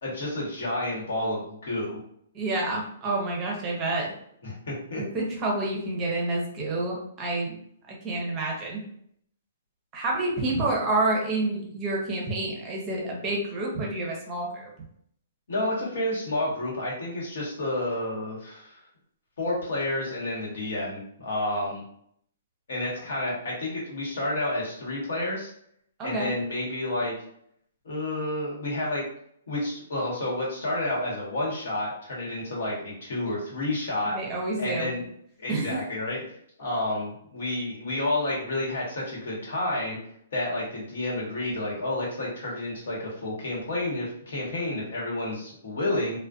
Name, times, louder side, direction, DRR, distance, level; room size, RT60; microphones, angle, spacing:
voice 1, 0.0-2.0 4.4-5.0 15.5-18.7 19.4-21.8 22.7-25.5 26.0-27.1 27.8-29.0 29.5-34.2 34.6-35.1 35.4-36.2 36.6-40.0 40.3-46.2, left 1 dB, 70° left, -4 dB, 1.1 m, -30 dB
voice 2, 2.3-4.1 4.9-7.5 7.9-8.8 9.9-14.7 26.0-26.3 34.1-34.9 35.5-35.8, right 2 dB, 25° right, -2 dB, 0.6 m, -28 dB
2.4 x 2.1 x 2.4 m, 0.68 s
hypercardioid pair, 155°, 0 cm